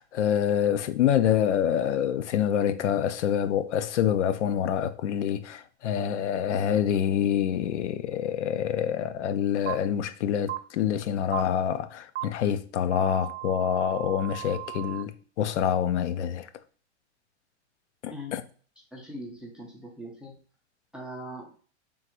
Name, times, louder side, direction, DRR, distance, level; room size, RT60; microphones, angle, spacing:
voice 1, 0.0-16.5 18.0-18.4, left 9 dB, 80° left, 0.6 m, -26 dB
sound 1, 9.7-9.8 10.5-10.6 11.3-11.4 12.2-12.3 12.9-15.0, right 17 dB, 85° right, 0.7 m, -36 dB
voice 2, 18.1-18.4 18.9-20.3 20.9-21.5, equal, 5° right, 0.3 m, -40 dB
3.7 x 2.6 x 4.4 m
hypercardioid pair, 145°, 35 cm